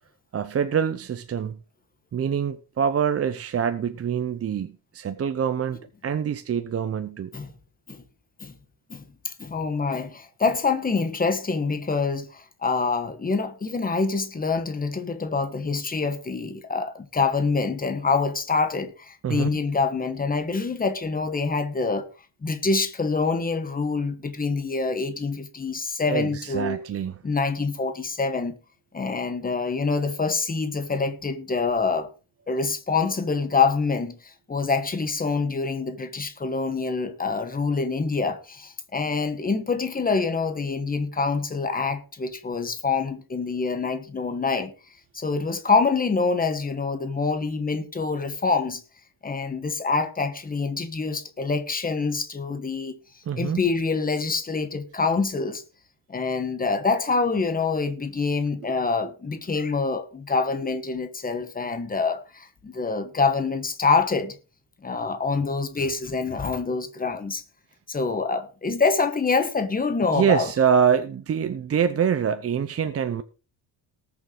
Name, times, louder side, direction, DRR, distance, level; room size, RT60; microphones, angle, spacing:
voice 1, 0.3-1.6 2.1-7.3 19.2-19.5 26.1-27.1 53.3-53.6 58.6-58.7 70.1-73.2, right 7 dB, 30° right, 0.6 m, -25 dB
voice 2, 8.9-22.1 22.4-26.8 27.2-28.6 28.9-32.1 32.5-44.7 45.1-48.8 49.2-53.0 53.4-55.6 56.1-64.4 64.8-67.4 67.9-70.5, left 4 dB, 20° left, 1.2 m, -26 dB
18.5 x 7.0 x 3.8 m
cardioid pair, 165°, 49 cm